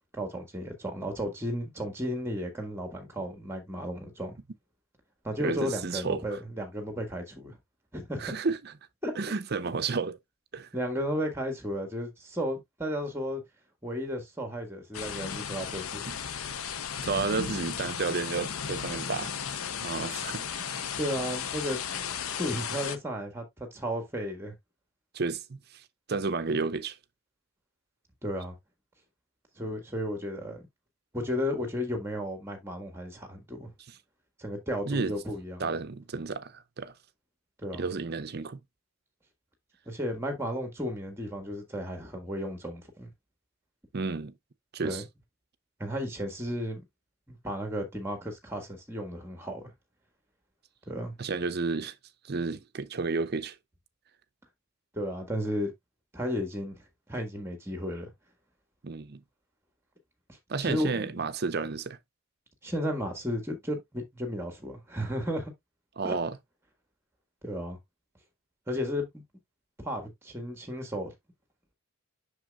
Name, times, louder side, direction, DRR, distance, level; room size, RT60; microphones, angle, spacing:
voice 1, 0.1-4.4 5.2-7.6 7.9-8.3 9.0-9.1 10.7-13.4 13.8-16.0 17.4-17.5 21.0-22.1 22.4-24.5 28.2-28.5 29.6-30.7 31.1-33.7 34.4-35.7 37.6-37.9 39.9-43.1 44.8-45.0 45.8-46.8 47.3-49.7 50.8-51.1 54.9-55.7 56.1-56.8 57.1-58.1 60.3-61.2 62.6-65.5 66.0-66.2 67.4-67.8 68.7-69.2 69.8-71.1, equal, 10° right, 1.7 m, -34 dB
voice 2, 5.4-6.2 8.2-8.7 9.2-10.2 10.5-10.7 16.1-16.2 17.0-19.4 19.8-20.9 25.1-25.8 26.1-27.0 33.9-34.0 34.8-35.1 35.6-36.9 37.7-38.6 43.9-44.3 44.7-45.0 51.2-51.9 52.2-53.6 58.8-59.2 60.5-62.0 66.0-66.4, right 4 dB, 50° right, 0.6 m, -32 dB
sound 1, 14.9-23.0, left 7 dB, 85° left, 0.7 m, -35 dB
7.7 x 6.4 x 2.3 m
head